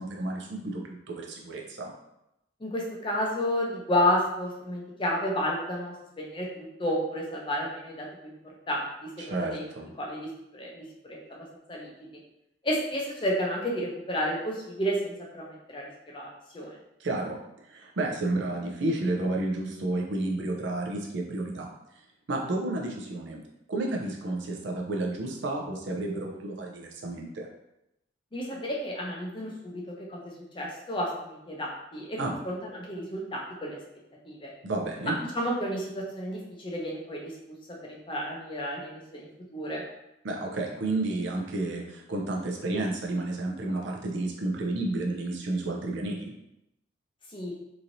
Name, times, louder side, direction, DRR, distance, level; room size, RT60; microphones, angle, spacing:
voice 1, 0.0-1.9 9.2-9.9 17.0-17.4 17.7-21.7 22.3-23.4 23.7-27.5 32.2-32.3 34.6-35.2 40.2-46.3, right 2 dB, 65° right, 0 dB, 0.5 m, -31 dB
voice 2, 2.6-8.3 8.7-9.6 10.0-11.9 12.6-16.3 16.5-16.8 28.3-33.8 34.3-34.5 35.3-37.3 37.7-39.8 47.3-47.5, equal, 25° left, -2 dB, 0.5 m, -31 dB
3.0 x 2.7 x 2.6 m, 0.85 s
head